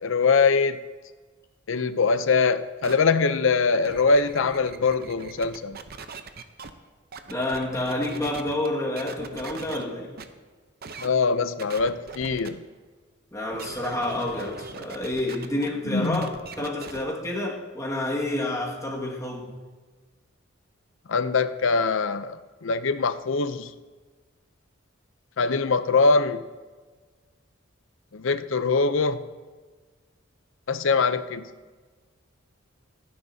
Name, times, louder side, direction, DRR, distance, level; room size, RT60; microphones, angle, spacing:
voice 1, 0.0-0.8 1.7-5.8 11.0-12.6 15.9-16.3 21.1-22.4 22.6-23.7 25.4-26.4 28.1-29.2 30.7-31.4, left 4 dB, 65° left, 12 dB, 0.6 m, -23 dB
sound 1, 2.8-3.0 3.6-6.7 7.1-8.7 9.0-9.8 10.2-10.3 10.8-11.1 11.6-12.5 13.5-17.0, right 4 dB, 50° right, 0.7 m, -40 dB
voice 2, 7.3-10.1 13.3-19.6, left 1 dB, 15° left, -3 dB, 1.9 m, -29 dB
26.5 x 9.9 x 2.8 m, 1.4 s
head